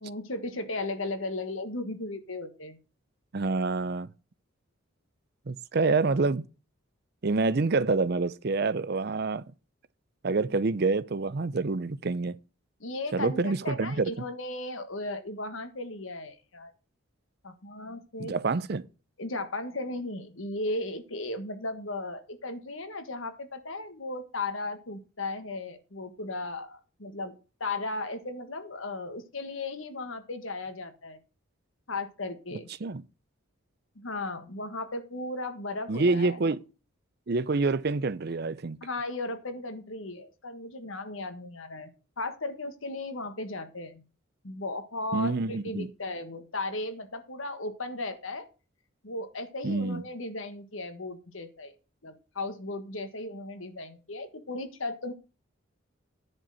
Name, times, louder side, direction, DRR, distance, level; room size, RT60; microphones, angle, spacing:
voice 1, 0.0-2.8 12.8-16.7 17.4-18.3 19.2-27.3 27.6-31.2 31.9-32.7 33.9-36.4 38.8-44.0 44.4-48.5 49.0-51.7 52.0-55.1, left 2 dB, 80° left, 1.6 m, -36 dB
voice 2, 3.3-4.1 5.5-6.4 7.2-9.4 10.2-12.4 13.1-14.1 18.2-18.8 32.8-33.0 35.9-36.6 37.3-38.8 45.1-45.9 49.6-50.0, right 3 dB, 50° right, 0.6 m, -27 dB
10.5 x 4.5 x 7.7 m
head